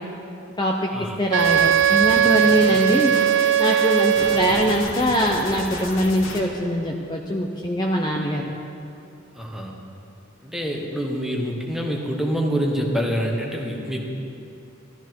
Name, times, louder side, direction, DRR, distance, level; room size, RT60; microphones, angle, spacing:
voice 1, 0.6-3.1 3.6-8.4, equal, 20° left, -1 dB, 0.7 m, -22 dB
Wind instrument woodwind instrument, 1.3-4.9, right 9 dB, 60° right, 0.4 m, -19 dB
sound 1, 1.4-6.4, left 3 dB, 90° left, 1.6 m, -34 dB
voice 2, 9.3-9.7 10.4-14.0, equal, ahead, 0 dB, 1.3 m, -26 dB
14.5 x 12.5 x 4.6 m, 2.7 s
head